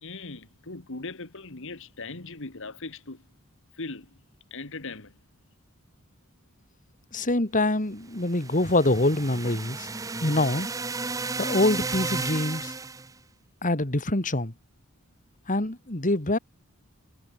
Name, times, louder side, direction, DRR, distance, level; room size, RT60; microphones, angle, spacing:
voice 1, 0.0-3.2 3.7-4.1 4.5-5.1, left 3 dB, 60° left, 1.9 m, -39 dB
voice 2, 7.1-9.9 10.2-10.7 11.4-12.7 13.6-14.5 15.5-16.4, left 2 dB, 35° left, 2.4 m, -25 dB
sound 1, 8.2-13.1, right 3 dB, 15° right, 0.6 m, -33 dB
head